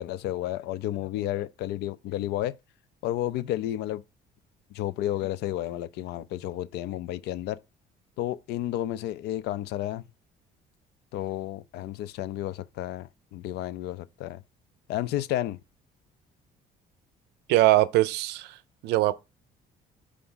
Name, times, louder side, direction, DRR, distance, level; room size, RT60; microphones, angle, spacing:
voice 1, 0.0-2.6 3.0-4.0 4.7-7.6 8.2-10.0 11.1-14.4 14.9-15.6, left 13 dB, 80° left, 0.5 m, -31 dB
voice 2, 17.5-18.6 18.8-19.2, right 16 dB, 90° right, 0.5 m, -22 dB
5.0 x 3.4 x 5.6 m
cardioid pair, 110°, 17 cm